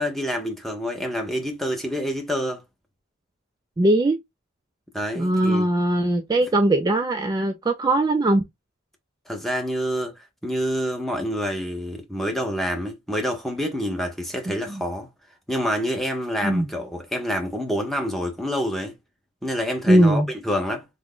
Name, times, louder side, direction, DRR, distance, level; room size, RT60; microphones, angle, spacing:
voice 1, 0.0-2.6 4.9-5.7 9.3-15.1 15.5-19.0 19.4-20.9, equal, ahead, 0.7 m, -27 dB
voice 2, 3.8-4.2 5.2-8.4 14.5-14.8 16.4-16.7 19.9-20.3, right 1 dB, 20° right, 0.3 m, -20 dB
3.4 x 2.1 x 3.7 m
head